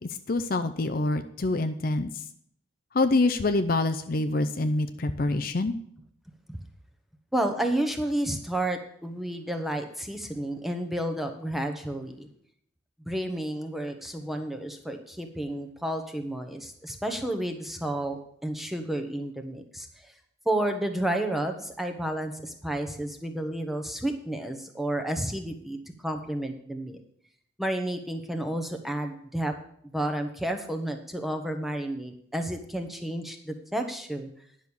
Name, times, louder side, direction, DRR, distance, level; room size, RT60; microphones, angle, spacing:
voice 1, 0.0-2.1 2.9-5.7, left 2 dB, 45° left, 9 dB, 0.5 m, -26 dB
voice 2, 7.3-12.3 13.1-20.1 20.4-25.8 26.0-27.0 27.6-29.5 29.9-34.3, right 1 dB, ahead, 5 dB, 1.0 m, -31 dB
10.5 x 6.2 x 7.0 m, 0.67 s
head